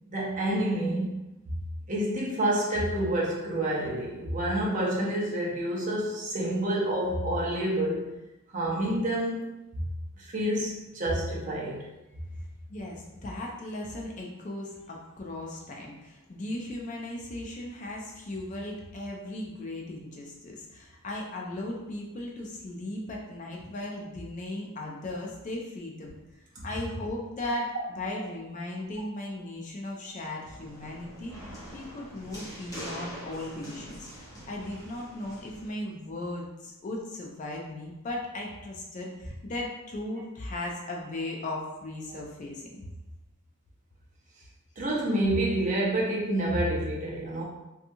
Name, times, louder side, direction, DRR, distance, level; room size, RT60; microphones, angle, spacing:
voice 1, 0.1-1.2 1.9-8.1 8.5-9.5 9.7-9.8 10.2-11.9 44.8-47.4, right 1 dB, 35° right, -4 dB, 0.6 m, -28 dB
voice 2, 12.7-31.4 31.7-42.9, left 1 dB, 35° left, -1 dB, 0.3 m, -37 dB
sound 1, 30.5-35.7, equal, 15° left, 0.7 m, -44 dB
2.8 x 2.3 x 2.6 m, 1.0 s
head